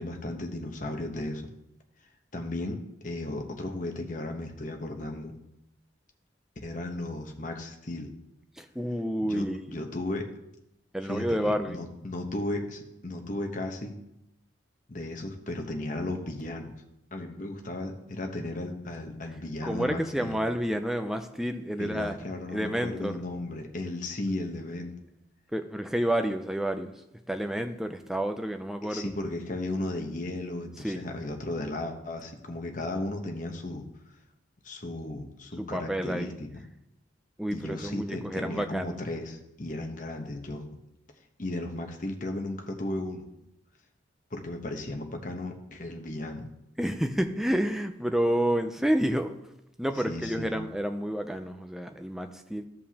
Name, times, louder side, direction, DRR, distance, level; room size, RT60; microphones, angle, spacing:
voice 1, 0.0-1.4 2.3-5.3 6.6-8.1 9.2-10.3 11.1-13.9 14.9-16.7 17.1-20.4 21.8-24.9 28.8-33.9 34.6-36.6 37.5-40.7 41.4-43.2 44.3-46.5 50.1-50.6, left 1 dB, 40° left, 3 dB, 1.0 m, -35 dB
voice 2, 8.6-9.8 10.9-11.8 19.6-22.2 22.5-23.1 25.5-26.9 27.3-29.1 30.8-31.1 35.6-36.4 37.4-39.0 46.8-49.3 49.8-52.6, equal, ahead, 6 dB, 0.4 m, -29 dB
14.5 x 5.3 x 2.9 m, 0.85 s
head